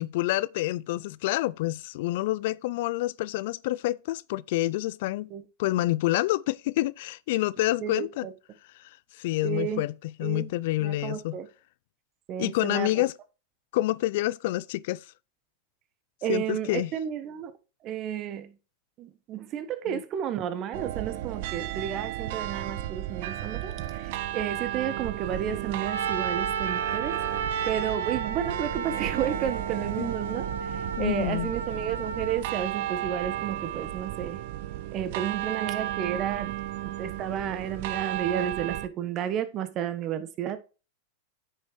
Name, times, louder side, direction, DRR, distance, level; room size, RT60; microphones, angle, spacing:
voice 1, 0.0-5.3 5.6-8.3 8.8-11.4 12.4-13.1 13.7-15.0 16.3-16.9 19.9-20.0 30.0-30.1 31.0-31.5, left 17 dB, 60° left, 0.3 m, -28 dB
voice 2, 7.8-8.3 9.4-9.8 10.2-10.5 10.8-11.5 12.3-12.9 16.2-17.5 17.8-18.5 19.0-27.2 27.6-34.4 34.9-40.6, right 9 dB, 40° right, 1.2 m, -32 dB
sound 1, 20.7-38.9, right 13 dB, 60° right, 0.6 m, -34 dB
Trumpet, 25.8-32.4, right 6 dB, 80° right, 1.1 m, -33 dB
9.4 x 6.0 x 3.1 m
hypercardioid pair, 95°, 0 cm